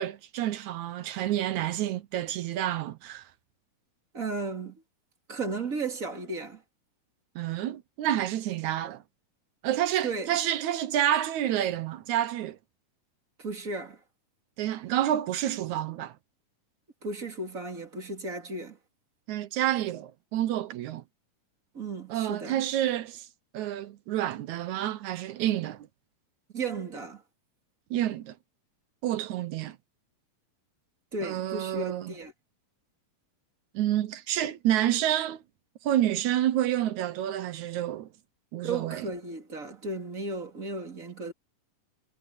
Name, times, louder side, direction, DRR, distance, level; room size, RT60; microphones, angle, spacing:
voice 1, 0.0-3.2 7.4-9.0 9.6-12.6 14.6-16.1 19.3-21.0 22.1-23.3 23.5-25.9 27.9-28.3 29.0-29.8 31.2-32.1 33.7-35.4 35.8-38.1 38.5-39.1, right 12 dB, 70° right, 2.0 m, -29 dB
voice 2, 4.1-4.8 5.3-6.6 10.0-10.3 13.4-14.0 17.0-18.8 21.7-22.6 26.5-27.2 31.1-32.3 38.6-41.3, right 3 dB, 25° right, 2.5 m, -35 dB
omnidirectional pair, 3.9 m